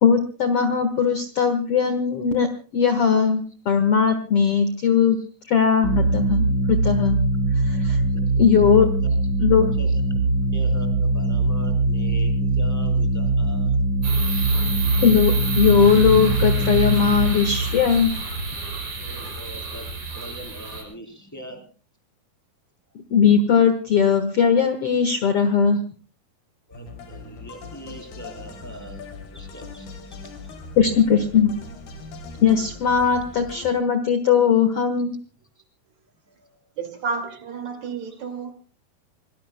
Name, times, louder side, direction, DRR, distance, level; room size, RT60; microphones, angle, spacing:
voice 1, 0.0-2.5 2.7-5.2 5.5-7.2 7.6-8.0 8.4-8.9 9.4-9.7 15.0-18.1 23.1-25.8 30.8-31.5 32.4-35.1, left 7 dB, 50° left, 1.9 m, -19 dB
sound 1, 5.8-19.1, right 2 dB, 30° left, 4.0 m, -22 dB
voice 2, 10.5-13.8 14.3-14.6 19.0-21.7 25.7-25.8 26.7-29.0 29.3-30.5 31.1-31.5 36.3-36.7 38.1-38.2, right 1 dB, 5° left, 3.2 m, -42 dB
sound 2, 14.0-20.8, right 3 dB, 70° right, 7.3 m, -31 dB
sound 3, 26.7-33.7, left 3 dB, 90° left, 5.0 m, -40 dB
voice 3, 36.8-38.5, right 5 dB, 50° right, 3.3 m, -31 dB
27.0 x 19.5 x 2.2 m
omnidirectional pair, 4.3 m